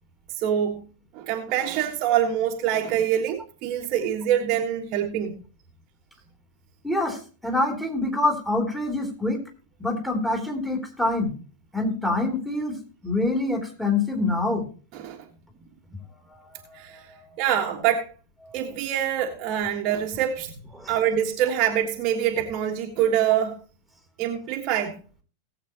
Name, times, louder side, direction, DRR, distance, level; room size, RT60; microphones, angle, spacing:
voice 1, 0.3-0.8 1.1-5.3 14.9-15.3 16.7-17.1 17.4-18.1 18.5-20.5 20.9-23.6 24.2-25.0, right 10 dB, 40° right, 1.5 m, -25 dB
voice 2, 6.8-9.4 9.8-11.3 11.7-12.7 13.0-14.6 16.3-17.2 18.4-18.6 20.8-20.9, left 2 dB, ahead, 3.2 m, -26 dB
18.5 x 8.0 x 2.9 m
figure-of-eight pair, 90°, 0 cm